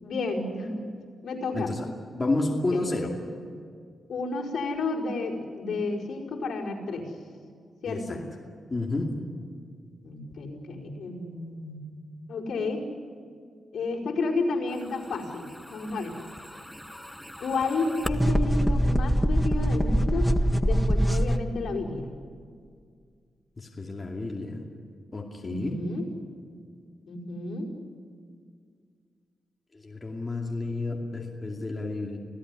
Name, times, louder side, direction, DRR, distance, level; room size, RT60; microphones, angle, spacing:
voice 1, 0.0-0.8 1.2-1.7 2.7-2.8 4.1-7.1 7.8-8.2 10.0-11.8 12.3-12.8 13.7-16.1 17.4-20.3 20.6-22.1 25.4-26.1 27.1-27.7, left 3 dB, 70° left, -2 dB, 4.9 m, -31 dB
voice 2, 1.5-1.9 2.1-3.2 7.9-8.2 8.7-9.1 23.6-24.6 25.1-25.7 29.7-32.2, left 2 dB, 25° left, -1 dB, 2.5 m, -30 dB
sound 1, 16.2-21.4, equal, ahead, 1.0 m, -24 dB
28.0 x 17.0 x 9.9 m, 2.1 s
wide cardioid pair, 125°, 0 cm